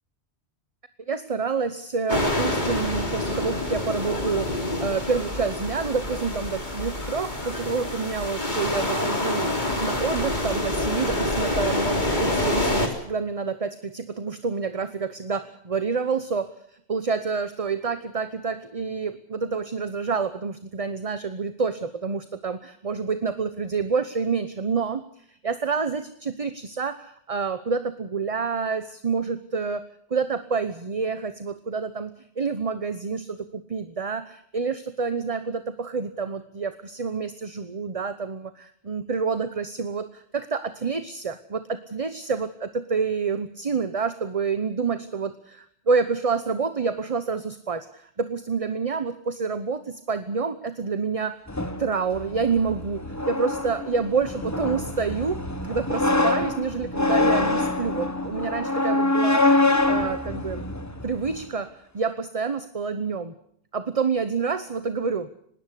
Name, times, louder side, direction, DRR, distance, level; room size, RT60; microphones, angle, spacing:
voice 1, 1.1-16.5 16.9-25.0 25.3-51.4 51.8-60.6 61.0-63.3 63.7-65.3, right 5 dB, 35° right, 11 dB, 1.0 m, -28 dB
sound 1, 2.1-12.9, left 1 dB, 40° left, 3.7 m, -27 dB
sound 2, 51.5-61.4, left 2 dB, 15° left, 1.3 m, -25 dB
20.5 x 17.5 x 8.3 m, 0.66 s
omnidirectional pair, 1.1 m